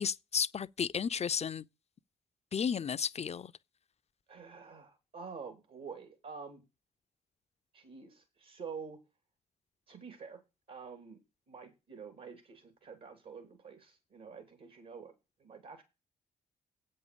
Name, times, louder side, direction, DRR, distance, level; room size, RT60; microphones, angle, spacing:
voice 1, 0.0-1.6 2.5-3.5, left 7 dB, 40° left, 0.6 m, -33 dB
voice 2, 4.3-6.6 7.7-9.0 9.9-10.4 10.7-11.2 11.5-15.8, right 5 dB, 70° right, 3.1 m, -48 dB
8.3 x 6.5 x 6.9 m
hypercardioid pair, 50°, 17 cm